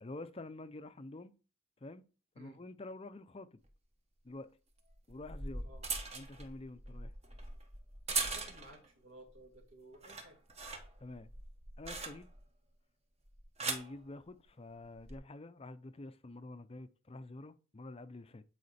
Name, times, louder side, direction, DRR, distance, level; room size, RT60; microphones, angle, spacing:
voice 1, 0.0-1.3 1.8-2.0 2.4-3.6 4.2-4.5 5.1-5.7 6.1-7.1 11.0-11.3 11.8-12.3 13.6-18.4, left 2 dB, 30° left, 0.5 m, -48 dB
sound 1, 3.6-3.7 4.9-8.9 9.3-9.6 9.9-12.5 13.3-13.9 14.8-15.2, right 4 dB, 30° right, 1.2 m, -41 dB
voice 2, 8.3-10.4, right 1 dB, 65° right, 2.0 m, -56 dB
9.4 x 5.0 x 4.2 m
head